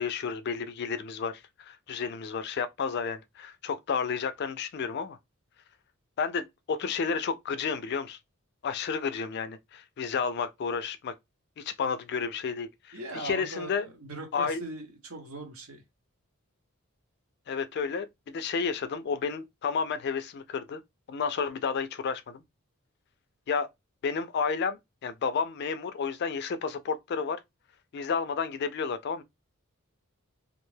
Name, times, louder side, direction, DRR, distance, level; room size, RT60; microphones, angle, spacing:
voice 1, 0.0-5.2 6.2-8.2 8.6-11.1 11.6-13.8 14.3-14.6 17.5-20.8 21.1-22.4 23.5-23.7 24.0-27.4 27.9-29.2, left 5 dB, 50° left, 0.3 m, -31 dB
voice 2, 12.9-15.8, right 2 dB, 70° right, 0.9 m, -40 dB
2.4 x 2.2 x 3.2 m
head